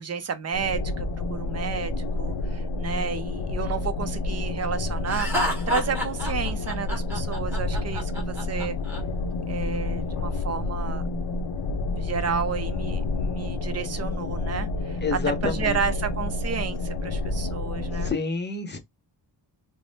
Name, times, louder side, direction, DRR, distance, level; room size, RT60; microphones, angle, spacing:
voice 1, 0.0-8.8 9.5-11.1 11.9-18.1, right 6 dB, 35° right, 0.5 m, -31 dB
sound 1, 0.5-18.1, left 2 dB, 70° left, 0.6 m, -29 dB
Laughter, 5.1-9.0, left 1 dB, 5° right, 1.0 m, -30 dB
voice 2, 15.0-15.8 18.0-18.8, left 4 dB, 25° left, 0.6 m, -28 dB
3.3 x 2.0 x 4.0 m
wide cardioid pair, 175°, 42 cm